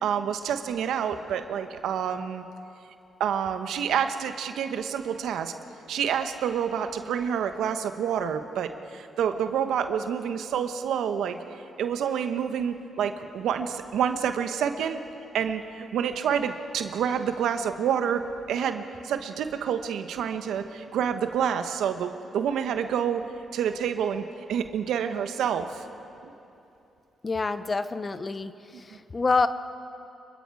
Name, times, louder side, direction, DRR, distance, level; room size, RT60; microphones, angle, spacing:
voice 1, 0.0-2.4 3.2-5.5 5.9-11.4 11.8-15.0 15.3-23.2 23.5-25.8 26.2-26.3, right 8 dB, 80° right, 8 dB, 1.2 m, -28 dB
voice 2, 27.2-29.5, left 4 dB, 35° left, 12 dB, 1.0 m, -27 dB
26.0 x 22.5 x 4.8 m, 2.7 s
supercardioid pair, 55°, 0 cm